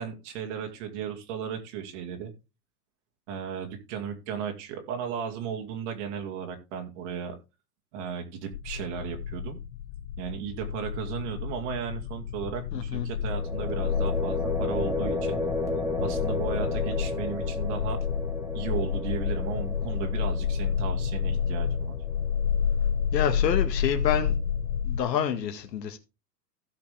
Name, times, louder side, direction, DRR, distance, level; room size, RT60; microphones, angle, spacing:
voice 1, 0.0-2.3 3.3-7.4 7.9-9.6 10.2-15.4 16.0-18.0 18.5-22.0, right 7 dB, 45° right, 2.4 m, -35 dB
sound 1, 8.5-25.0, left 7 dB, 60° left, 0.8 m, -30 dB
voice 2, 12.7-13.1 23.1-24.3 24.8-26.0, left 9 dB, 85° left, 2.0 m, -28 dB
sound 2, 13.3-23.1, left 2 dB, 5° right, 2.1 m, -33 dB
16.5 x 5.8 x 3.5 m
supercardioid pair, 150°, 49 cm